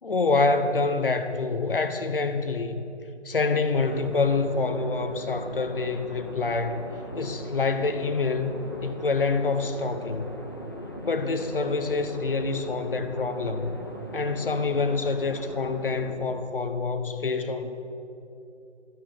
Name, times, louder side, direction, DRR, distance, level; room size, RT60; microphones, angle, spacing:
voice 1, 0.0-2.8 3.2-6.9 7.1-8.5 8.8-10.4 11.0-13.8 14.1-17.7, left 3 dB, 50° left, 9 dB, 1.0 m, -26 dB
sound 1, 3.8-16.1, equal, 20° left, 0.6 m, -40 dB
14.5 x 11.5 x 6.0 m, 2.9 s
figure-of-eight pair, 155°, 36 cm